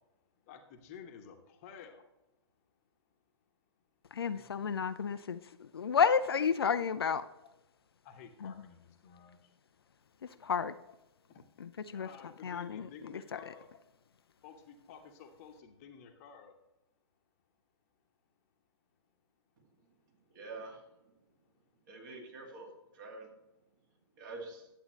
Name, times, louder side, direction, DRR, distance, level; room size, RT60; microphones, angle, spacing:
voice 1, 0.5-2.0 4.3-4.5 8.0-9.4 11.3-11.4 11.9-13.7 14.4-16.5, left 7 dB, 30° left, 5 dB, 1.0 m, -52 dB
voice 2, 4.1-7.3 8.4-8.5 10.4-10.7 11.6-13.5, left 6 dB, 60° left, 12 dB, 0.5 m, -32 dB
voice 3, 20.3-20.8 21.9-22.7 22.9-23.3 24.2-24.7, right 3 dB, 45° right, 0 dB, 2.6 m, -46 dB
11.0 x 7.9 x 3.2 m, 0.95 s
figure-of-eight pair, 120°, 14 cm